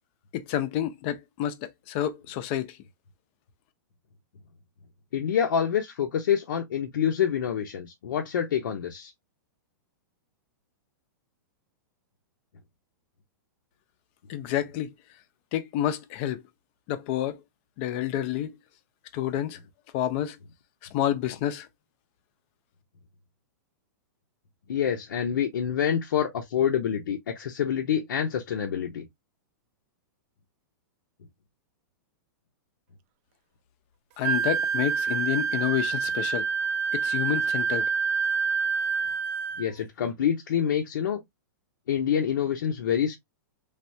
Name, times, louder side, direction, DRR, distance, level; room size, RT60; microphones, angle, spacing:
voice 1, 0.3-2.7 14.3-14.9 15.5-16.4 16.9-17.4 17.8-18.5 19.1-19.6 19.9-20.4 20.9-21.7 34.2-36.4 36.9-37.9, left 11 dB, 35° left, 0.5 m, -29 dB
voice 2, 5.1-9.1 24.7-29.1 39.6-41.2 41.9-43.2, left 8 dB, 80° left, 0.7 m, -27 dB
Wind instrument woodwind instrument, 34.2-39.7, right 6 dB, 35° right, 0.4 m, -27 dB
3.4 x 2.4 x 2.6 m
supercardioid pair, 160°, 11 cm